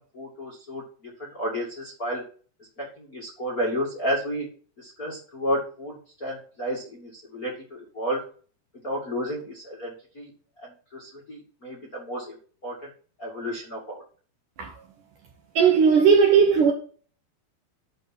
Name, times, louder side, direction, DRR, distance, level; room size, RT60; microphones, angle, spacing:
voice 1, 0.1-0.8 1.2-2.2 2.8-4.5 4.8-5.9 6.2-8.2 8.8-10.3 10.6-12.3 12.6-12.8 13.2-14.0, equal, 30° left, 1.8 m, -31 dB
voice 2, 15.6-16.7, right 6 dB, 65° right, 2.2 m, -17 dB
10.5 x 3.7 x 7.2 m
omnidirectional pair, 4.7 m